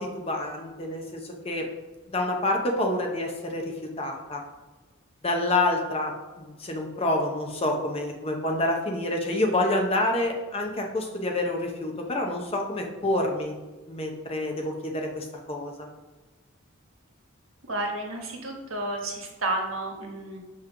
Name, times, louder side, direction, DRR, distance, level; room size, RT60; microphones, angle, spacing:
voice 1, 0.0-1.6 2.1-4.4 5.2-13.5 13.9-15.9, left 1 dB, 25° left, 2 dB, 0.8 m, -28 dB
voice 2, 17.6-20.4, right 2 dB, 70° right, 1 dB, 1.3 m, -31 dB
7.2 x 3.1 x 5.9 m, 1.2 s
head